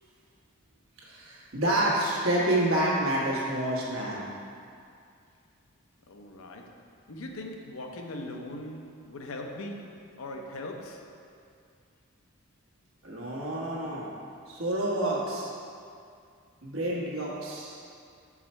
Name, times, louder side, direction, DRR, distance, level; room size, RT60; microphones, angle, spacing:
voice 1, 1.0-4.2 13.0-14.1 14.5-15.5 16.6-17.8, right 1 dB, 75° right, -4 dB, 1.3 m, -28 dB
voice 2, 6.1-6.8 7.1-11.1, left 1 dB, 75° left, 3 dB, 0.6 m, -40 dB
5.6 x 4.8 x 4.3 m, 2.4 s
head